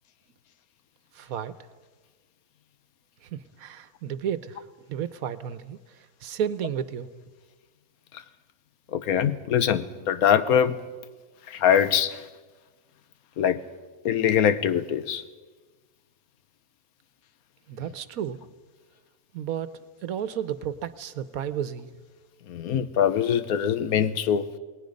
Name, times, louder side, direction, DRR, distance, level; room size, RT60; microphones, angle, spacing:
voice 1, 1.1-1.5 3.2-7.1 17.7-18.4 19.3-19.7 20.0-21.9, right 9 dB, 80° right, 14 dB, 1.3 m, -32 dB
voice 2, 8.9-10.8 11.5-12.2 13.4-13.6 14.0-15.2 22.5-24.5, left 9 dB, 80° left, 13 dB, 1.3 m, -23 dB
27.5 x 19.5 x 5.3 m, 1.4 s
omnidirectional pair, 1.5 m